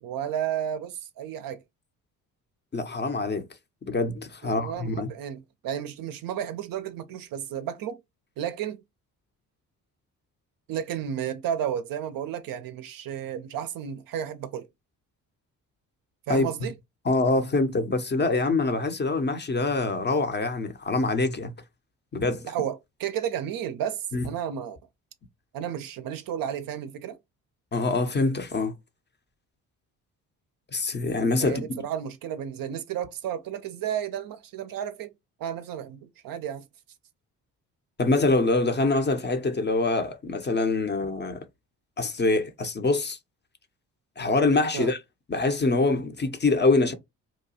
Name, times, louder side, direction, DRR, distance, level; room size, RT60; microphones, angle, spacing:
voice 1, 0.0-1.6 4.4-8.0 8.4-8.8 10.7-14.7 16.3-16.7 22.5-24.8 25.5-27.2 31.4-35.1 35.4-36.6 44.7-44.9, right 9 dB, 50° right, 0.5 m, -32 dB
voice 2, 2.7-3.4 3.9-5.1 16.3-16.5 17.0-21.5 22.1-22.5 24.1-24.3 27.7-28.7 30.7-31.7 38.0-41.4 42.0-43.2 44.2-45.0 45.3-46.9, left 3 dB, 25° left, 0.6 m, -24 dB
2.8 x 2.2 x 2.7 m
hypercardioid pair, 45°, 46 cm